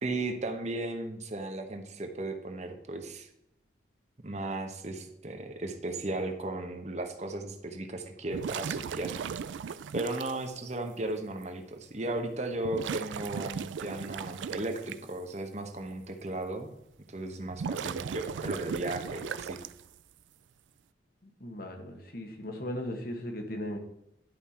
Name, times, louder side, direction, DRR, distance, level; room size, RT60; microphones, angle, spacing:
voice 1, 0.0-3.3 4.2-9.2 9.9-16.7 17.1-19.6, right 2 dB, 40° right, 5 dB, 1.0 m, -35 dB
sound 1, 8.3-10.4 11.4-11.5 12.6-14.9 17.4-20.0, right 6 dB, 85° right, 0.4 m, -37 dB
voice 2, 21.4-23.8, left 1 dB, 50° left, 3 dB, 1.5 m, -37 dB
10.5 x 5.5 x 4.3 m, 0.82 s
head